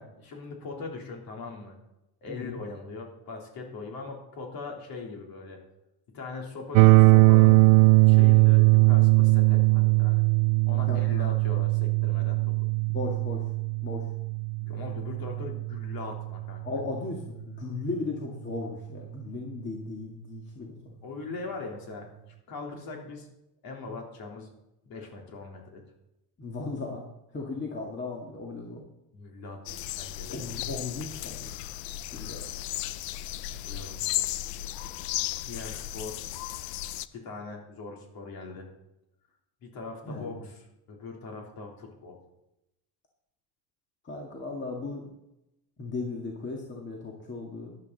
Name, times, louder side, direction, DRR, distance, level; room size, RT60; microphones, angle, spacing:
voice 1, 0.0-1.8 2.2-5.6 6.1-7.6 8.1-10.2 10.6-12.5 14.6-16.7 21.0-22.1 22.5-23.3 23.6-24.5 24.8-25.9 29.1-30.4 33.5-34.3 35.5-36.3 37.1-38.7 39.6-42.2, left 3 dB, 55° left, 0 dB, 3.5 m, -40 dB
voice 2, 2.3-2.6 10.8-11.3 12.9-13.5 13.8-14.1 16.6-20.9 26.4-27.1 27.3-28.8 30.3-31.5 32.1-32.6 40.0-40.4 44.0-45.1 45.8-47.7, left 3 dB, 25° left, 0 dB, 1.9 m, -36 dB
sound 1, 6.8-16.7, right 28 dB, 75° right, 0.5 m, -20 dB
sound 2, 29.7-37.1, left 14 dB, 80° left, 0.7 m, -35 dB
14.0 x 11.0 x 4.1 m, 0.88 s
cardioid pair, 140°, 43 cm